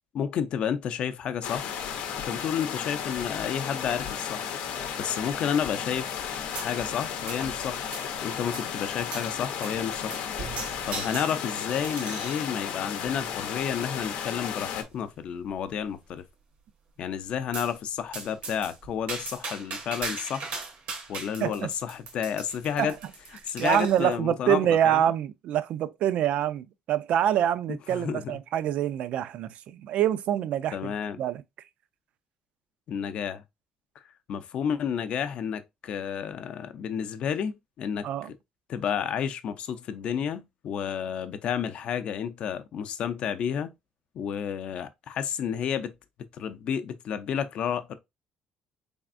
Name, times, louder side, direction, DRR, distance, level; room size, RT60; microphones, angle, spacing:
voice 1, 0.1-1.7 2.2-4.5 5.0-6.2 6.6-7.8 8.2-10.1 10.9-16.2 17.0-20.5 21.1-23.0 23.4-25.1 27.9-28.4 30.7-31.2 32.9-33.4 34.3-38.3 38.7-43.7 44.1-45.9 46.3-47.9, left 8 dB, 50° left, 0.5 m, -31 dB
sound 1, 1.4-14.8, left 8 dB, 90° left, 0.7 m, -34 dB
sound 2, 6.5-7.0 7.3-8.2 8.5-8.7 9.1-9.3 9.6-9.8 10.1-12.4 13.0-13.4 14.0-14.1 14.5-14.6 14.9-15.0 15.4-15.9 17.5-17.7 18.1-24.1, right 4 dB, 90° right, 1.4 m, -39 dB
voice 2, 23.6-30.9 31.2-31.4 38.0-38.3, right 10 dB, 60° right, 0.3 m, -26 dB
4.1 x 3.4 x 2.5 m
cardioid pair, 150°, 2 cm